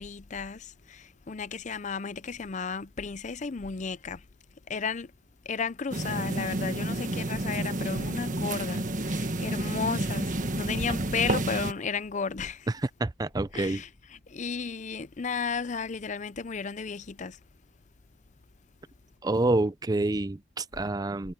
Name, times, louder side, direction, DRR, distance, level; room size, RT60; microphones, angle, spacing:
voice 1, 0.0-4.2 4.7-5.1 5.5-12.7 13.5-13.9 14.3-17.4, left 5 dB, 40° left, 0.5 m, -34 dB
sound 1, 5.9-11.7, right 1 dB, 40° right, 1.5 m, -30 dB
voice 2, 12.7-13.8 19.2-21.3, right 2 dB, 20° right, 0.4 m, -28 dB
head